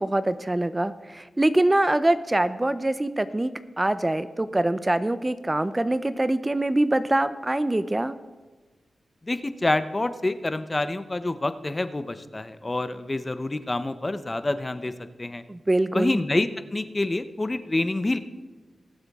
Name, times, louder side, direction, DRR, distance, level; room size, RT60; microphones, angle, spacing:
voice 1, 0.0-8.2 15.5-16.2, right 1 dB, 20° right, 13 dB, 0.5 m, -24 dB
voice 2, 9.2-14.9 15.2-15.4 15.9-18.2, left 2 dB, 30° left, 12 dB, 0.7 m, -27 dB
20.0 x 8.0 x 3.6 m, 1.3 s
cardioid pair, 60°, 0 cm